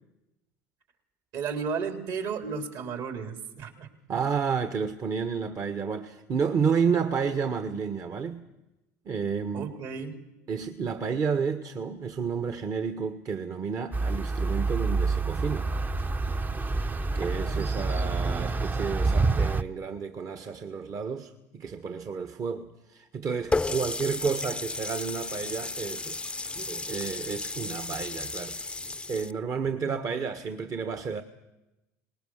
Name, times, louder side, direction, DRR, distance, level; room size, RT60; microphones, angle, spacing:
voice 1, 1.3-3.9 9.5-10.2 17.2-18.5, right 5 dB, 55° right, 3.9 m, -35 dB
voice 2, 4.1-8.4 9.0-9.8 10.5-15.7 17.1-26.2 26.5-28.8 29.1-31.2, right 6 dB, 40° right, 1.4 m, -31 dB
sound 1, 13.9-19.6, right 3 dB, 20° right, 0.9 m, -27 dB
Water tap faucet, 23.5-29.3, left 3 dB, 10° left, 0.7 m, -33 dB
25.0 x 20.0 x 6.5 m
hypercardioid pair, 75°, 9 cm